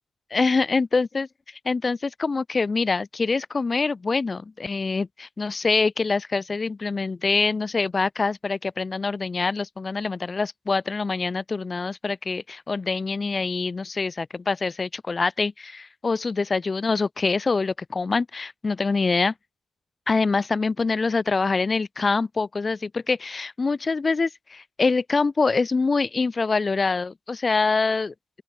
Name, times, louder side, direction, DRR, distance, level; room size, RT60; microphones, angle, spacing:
voice 1, 0.3-1.3 1.6-19.3 20.1-28.1, left 4 dB, 35° left, 0.6 m, -25 dB
open air
hypercardioid pair, 45°, 0 cm